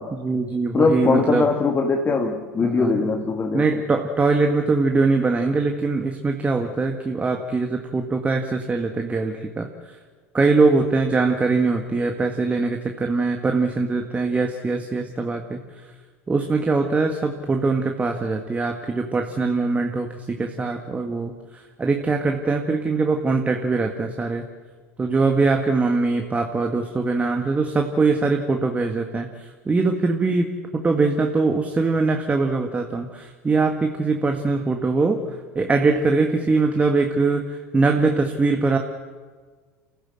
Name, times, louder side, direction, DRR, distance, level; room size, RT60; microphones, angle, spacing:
voice 1, 0.1-1.5 2.6-3.0 3.5-9.7 10.3-15.6 16.3-21.3 21.8-24.4 25.0-29.3 29.7-35.2 35.6-37.5 37.7-38.8, right 3 dB, 20° right, 4 dB, 1.9 m, -22 dB
voice 2, 0.7-3.8, left 4 dB, 25° left, 4 dB, 2.1 m, -21 dB
29.5 x 15.5 x 7.8 m, 1.5 s
figure-of-eight pair, 75°, 8 cm